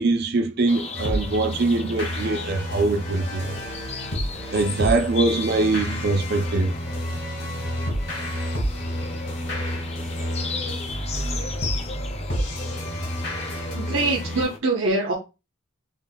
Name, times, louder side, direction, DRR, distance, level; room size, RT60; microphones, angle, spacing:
voice 1, 0.0-3.6 4.5-6.7, right 3 dB, 55° right, 0.5 m, -23 dB
sound 1, 0.7-14.6, left 4 dB, 30° left, 0.4 m, -36 dB
sound 2, 0.9-14.4, equal, 75° left, 2.1 m, -30 dB
voice 2, 13.5-15.1, right 2 dB, 85° right, 0.9 m, -24 dB
5.4 x 2.5 x 2.2 m
head